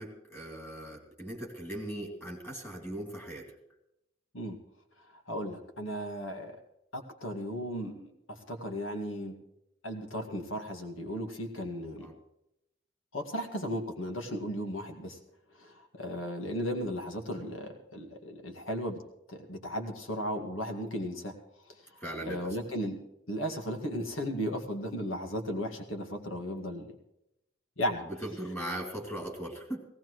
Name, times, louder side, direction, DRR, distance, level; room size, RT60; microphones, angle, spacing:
voice 1, 0.0-3.5 12.0-12.1 22.0-22.6 28.2-29.8, right 1 dB, 10° left, -1 dB, 3.0 m, -39 dB
voice 2, 5.3-6.6 6.9-9.3 9.8-12.1 13.1-15.2 15.6-19.0 19.3-21.3 21.7-21.9 22.2-23.0 23.3-27.0 27.8-28.0, equal, 90° left, 4 dB, 2.0 m, -35 dB
18.0 x 17.5 x 3.2 m, 0.85 s
head